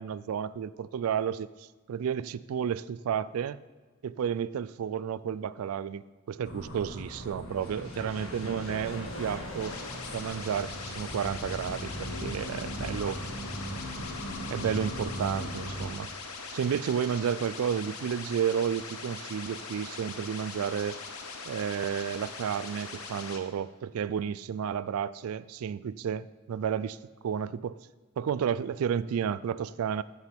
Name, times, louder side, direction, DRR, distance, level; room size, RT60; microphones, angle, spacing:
voice 1, 0.0-1.5 1.9-3.6 4.0-9.8 10.1-13.2 14.5-16.1 16.5-21.0 21.5-27.0 27.2-27.8 28.2-30.0, right 8 dB, 85° right, 17 dB, 0.3 m, -32 dB
sound 1, 6.4-15.9, equal, 70° left, 1.8 m, -38 dB
sound 2, 9.6-23.4, left 4 dB, 90° left, 1.1 m, -41 dB
11.5 x 8.3 x 3.5 m, 1.4 s
head